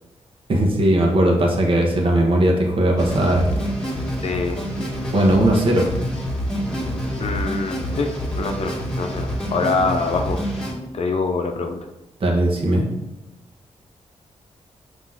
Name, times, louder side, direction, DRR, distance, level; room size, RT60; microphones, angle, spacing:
voice 1, 0.5-3.5 5.1-5.9 12.2-12.8, right 1 dB, 50° right, 0 dB, 1.2 m, -18 dB
sound 1, 3.0-10.7, equal, 10° left, 1.9 m, -27 dB
voice 2, 4.2-4.6 7.2-10.6 10.9-11.8, left 4 dB, 60° left, 4 dB, 0.6 m, -25 dB
5.9 x 3.0 x 5.7 m, 0.95 s
cardioid pair, 95°, 12 cm